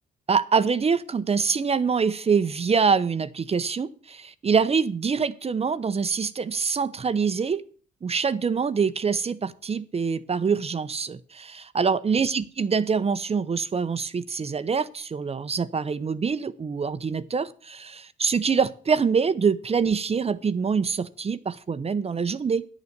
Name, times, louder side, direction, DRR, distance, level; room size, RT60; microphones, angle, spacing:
voice 1, 0.3-7.6 8.0-22.6, right 5 dB, 30° right, 14 dB, 0.7 m, -25 dB
10.5 x 6.9 x 6.6 m, 0.42 s
cardioid pair, 90°, 20 cm